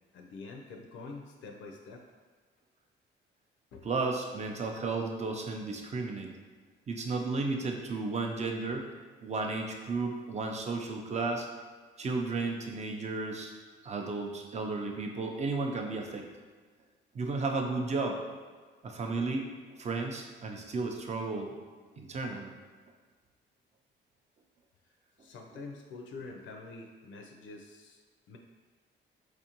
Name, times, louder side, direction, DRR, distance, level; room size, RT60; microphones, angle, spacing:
voice 1, 0.1-2.0 3.7-3.9 25.2-28.0 28.3-28.4, left 3 dB, 75° left, 2 dB, 0.4 m, -46 dB
voice 2, 3.8-6.3 6.9-8.8 9.2-11.5 12.0-13.5 13.8-16.3 17.1-18.2 18.8-19.5 19.8-21.5 22.0-22.5, right 3 dB, 35° right, 2 dB, 0.5 m, -33 dB
4.4 x 2.5 x 2.8 m, 1.5 s
cardioid pair, 90°, 20 cm